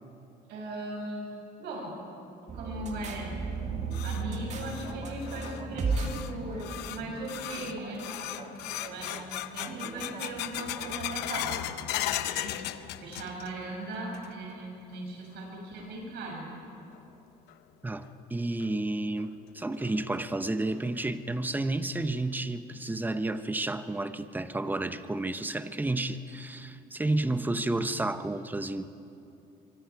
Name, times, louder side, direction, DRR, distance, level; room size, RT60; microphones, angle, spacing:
voice 1, 0.5-1.3 1.6-2.0 2.5-3.4 4.0-8.0 8.9-9.2 9.5-11.5 11.9-12.5 13.0-16.5, right 2 dB, 80° right, -1 dB, 6.6 m, -38 dB
sound 1, 2.5-10.9, right 4 dB, 40° right, 2.0 m, -36 dB
sound 2, 3.5-13.7 13.9-14.6 14.9-15.0 15.8-15.9 17.5-17.6 18.0-18.1 18.6-18.7 19.2-19.3 19.8-20.2, left 14 dB, 85° left, 0.7 m, -37 dB
voice 2, 17.8-28.9, right 2 dB, 10° right, 11 dB, 0.8 m, -31 dB
24.5 x 23.5 x 4.7 m, 2.7 s
cardioid pair, 110°, 17 cm